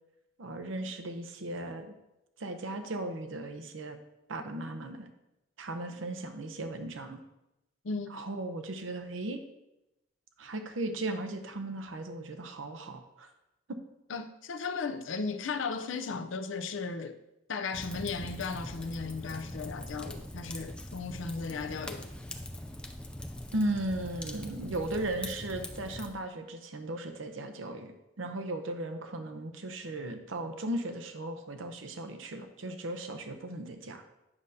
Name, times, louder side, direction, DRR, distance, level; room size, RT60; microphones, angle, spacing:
voice 1, 0.4-1.9 2.4-4.0 4.3-5.1 5.6-7.2 8.1-9.4 10.4-13.3 13.7-13.8 23.5-34.0, right 1 dB, 85° right, 0.7 m, -36 dB
voice 2, 7.8-8.3 14.1-17.2 17.5-22.1, left 4 dB, 80° left, 0.6 m, -36 dB
Fire, 17.7-26.1, left 1 dB, 5° left, 0.4 m, -42 dB
9.7 x 6.4 x 2.8 m
head